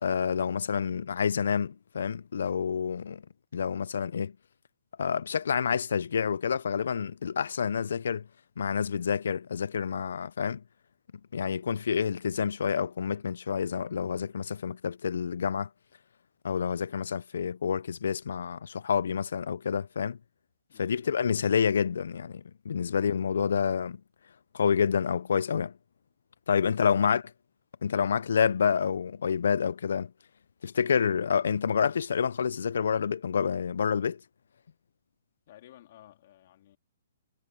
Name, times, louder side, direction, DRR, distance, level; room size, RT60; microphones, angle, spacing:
voice 1, 0.0-3.2 3.5-4.3 5.0-8.3 8.6-10.6 11.3-15.7 16.4-20.2 20.8-24.0 24.5-25.7 26.5-27.2 27.8-30.1 30.6-34.2, left 7 dB, 75° left, 0.4 m, -28 dB
voice 2, 20.7-21.2 26.6-27.2 27.9-28.3 35.5-36.8, left 13 dB, 45° left, 2.5 m, -54 dB
hypercardioid pair, 155°, 0 cm